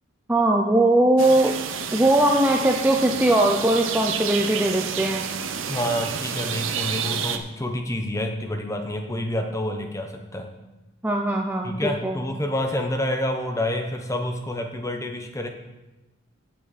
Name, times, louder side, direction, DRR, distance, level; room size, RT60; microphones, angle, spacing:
voice 1, 0.3-1.5 1.9-5.2 11.0-12.2, right 1 dB, 10° right, 2 dB, 0.5 m, -20 dB
sound 1, 1.2-7.4, right 7 dB, 55° right, 0.7 m, -30 dB
voice 2, 5.7-10.5 11.6-15.5, left 1 dB, 15° left, 4 dB, 0.8 m, -28 dB
15.5 x 5.9 x 4.1 m, 1.1 s
head